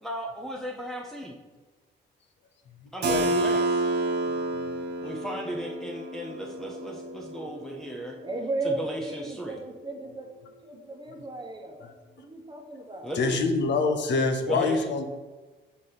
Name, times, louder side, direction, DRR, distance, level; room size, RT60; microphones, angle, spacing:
voice 1, 0.0-1.4 2.9-3.8 5.0-8.2 8.6-9.6 13.0-13.4 14.4-14.9, right 1 dB, ahead, -1 dB, 0.7 m, -35 dB
Keyboard (musical), 3.0-8.6, right 2 dB, 55° right, 1.1 m, -29 dB
voice 2, 8.2-10.3 10.6-11.9 12.2-13.1, right 2 dB, 20° right, 3 dB, 1.1 m, -35 dB
voice 3, 13.2-15.0, left 3 dB, 65° left, 6 dB, 0.8 m, -25 dB
5.6 x 4.8 x 4.1 m, 1.3 s
cardioid pair, 90°, 20 cm